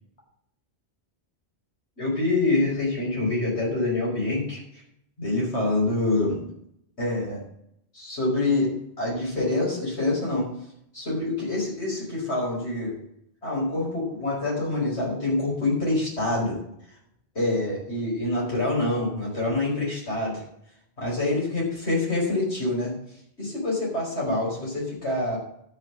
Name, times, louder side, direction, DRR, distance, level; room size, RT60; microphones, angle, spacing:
voice 1, 2.0-4.8 5.2-6.4 7.0-7.4 7.9-10.5 10.9-13.0 13.4-16.6 17.4-20.4 21.0-22.9 23.4-25.4, left 2 dB, 90° left, -4 dB, 5.6 m, -26 dB
12.0 x 6.2 x 7.6 m, 0.74 s
omnidirectional pair, 1.1 m